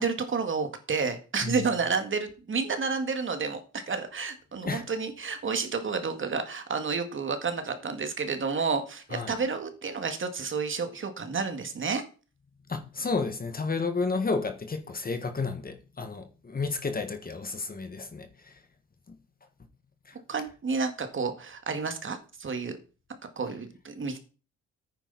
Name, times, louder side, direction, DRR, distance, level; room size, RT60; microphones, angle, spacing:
voice 1, 0.0-3.6 3.9-12.0 20.3-22.8 23.4-24.2, right 5 dB, 40° right, 2.0 m, -30 dB
voice 2, 12.7-18.5 19.1-19.2 20.1-20.2, left 4 dB, 30° left, 1.6 m, -31 dB
9.9 x 9.3 x 4.1 m
cardioid pair, 90°, 30 cm